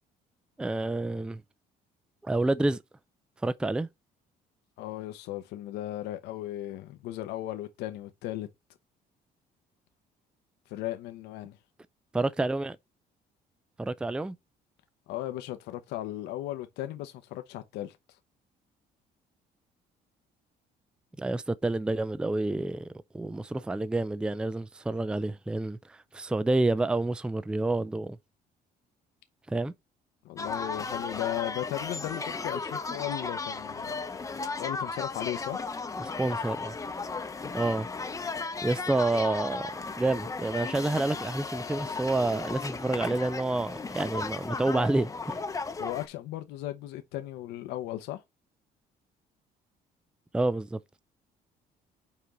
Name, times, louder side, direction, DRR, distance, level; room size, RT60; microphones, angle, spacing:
voice 1, 0.6-1.4 2.2-2.8 3.4-3.9 12.1-12.8 13.8-14.4 21.2-28.2 29.5-29.7 36.0-36.8 37.5-37.9 38.6-39.7 40.0-45.3 50.3-50.8, right 2 dB, 5° right, 0.4 m, -29 dB
voice 2, 4.8-8.5 10.7-11.6 15.1-18.0 30.2-34.0 34.6-35.6 45.8-48.2, left 14 dB, 90° left, 0.9 m, -36 dB
sound 1, 30.4-46.1, left 4 dB, 20° left, 0.8 m, -35 dB
5.8 x 4.5 x 3.9 m
cardioid pair, 110°, 17 cm